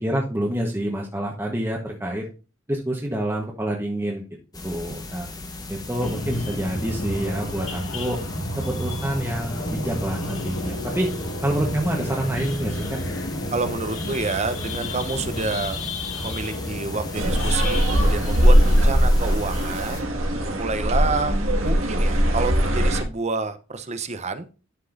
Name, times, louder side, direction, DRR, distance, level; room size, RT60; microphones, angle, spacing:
voice 1, 0.0-2.2 2.7-4.2 4.6-5.3 5.7-8.2 8.6-11.1 11.4-13.0, right 1 dB, 10° right, -1 dB, 1.1 m, -27 dB
sound 1, 4.5-20.0, left 2 dB, 20° left, 1.0 m, -37 dB
Evening traffic at JP Nagar, 6.0-18.9, left 1 dB, 75° left, 2.1 m, -31 dB
voice 2, 13.5-15.8 16.2-20.1 20.6-21.4 21.6-24.5, right 3 dB, 35° right, 11 dB, 0.8 m, -28 dB
sound 2, 17.1-23.0, equal, 85° right, 1.9 m, -20 dB
11.5 x 5.3 x 2.5 m, 0.33 s
head